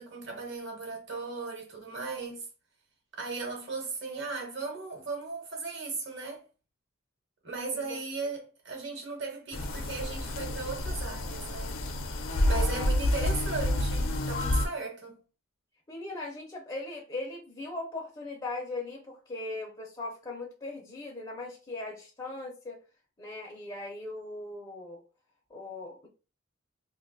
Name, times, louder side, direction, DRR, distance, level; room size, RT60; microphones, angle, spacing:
voice 1, 0.0-2.4 3.1-6.4 7.4-11.8 12.5-15.2, right 4 dB, 60° right, 1.1 m, -37 dB
sound 1, 9.5-14.7, left 1 dB, 75° left, 0.6 m, -29 dB
voice 2, 12.4-12.9 15.9-22.8 23.2-25.0 25.5-26.1, left 2 dB, 20° left, 0.6 m, -39 dB
2.5 x 2.3 x 3.9 m
head